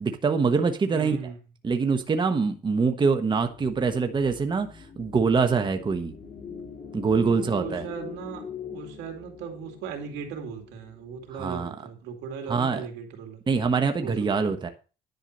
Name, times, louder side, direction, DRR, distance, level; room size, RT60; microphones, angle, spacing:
voice 1, 0.0-1.2 1.6-6.1 6.9-7.8 11.4-11.7 12.5-12.8 13.5-14.7, right 5 dB, 25° right, 7 dB, 1.1 m, -24 dB
voice 2, 0.9-1.4 7.3-13.4 14.0-14.5, right 6 dB, 90° right, 4 dB, 2.7 m, -38 dB
sound 1, 3.4-11.7, left 6 dB, 35° left, 2.7 m, -43 dB
10.5 x 4.7 x 6.6 m, 0.34 s
cardioid pair, 110°, 17 cm